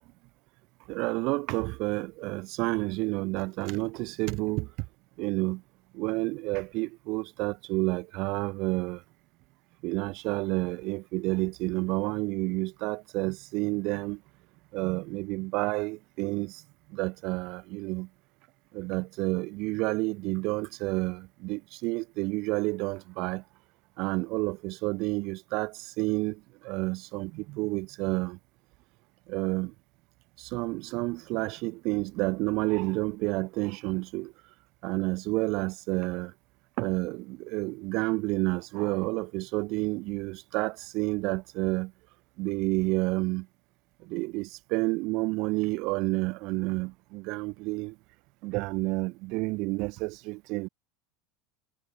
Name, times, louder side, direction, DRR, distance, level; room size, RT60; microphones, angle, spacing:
voice 1, 0.9-4.9 5.2-5.6 5.9-9.0 9.8-14.2 14.7-16.6 16.9-18.1 18.7-23.4 24.0-28.4 29.3-29.7 30.4-34.3 34.8-36.3 36.8-41.9 42.4-43.5 44.0-48.0 48.4-50.7, right 24 dB, 60° right, 1.9 m, -30 dB
supercardioid pair, 110°, 0 cm